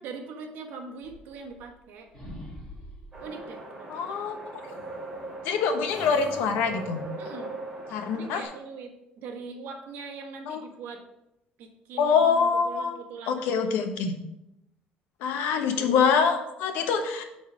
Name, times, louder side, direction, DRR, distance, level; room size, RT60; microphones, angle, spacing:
voice 1, 0.0-2.1 3.2-4.2 7.2-7.6 8.1-8.9 9.2-11.0 11.6-13.7 13.9-14.0 15.8-16.0, right 4 dB, 65° right, 2 dB, 1.3 m, -41 dB
sound 1, 1.0-1.9 2.1-3.3 4.6-5.5 5.8-7.1, right 1 dB, 10° left, 2.3 m, -44 dB
sound 2, 3.1-8.4, right 2 dB, 20° right, 2.6 m, -40 dB
voice 2, 3.9-4.4 5.4-7.1 7.9-8.5 10.5-10.6 12.0-13.0 13.3-14.1 15.2-17.2, left 6 dB, 85° left, 6 dB, 1.1 m, -25 dB
8.9 x 4.0 x 4.9 m, 0.89 s
cardioid pair, 165°, 3 cm